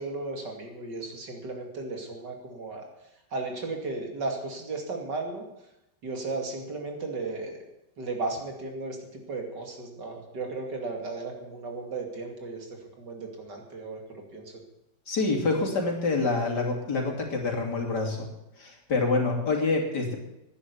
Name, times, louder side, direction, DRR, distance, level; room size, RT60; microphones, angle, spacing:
voice 1, 0.0-2.9 3.3-5.4 6.0-7.6 8.0-14.5, right 3 dB, 65° right, 3 dB, 3.2 m, -35 dB
voice 2, 15.1-18.3 18.6-20.2, left 3 dB, 60° left, 1 dB, 3.4 m, -26 dB
11.5 x 10.5 x 9.7 m, 0.88 s
omnidirectional pair, 2.0 m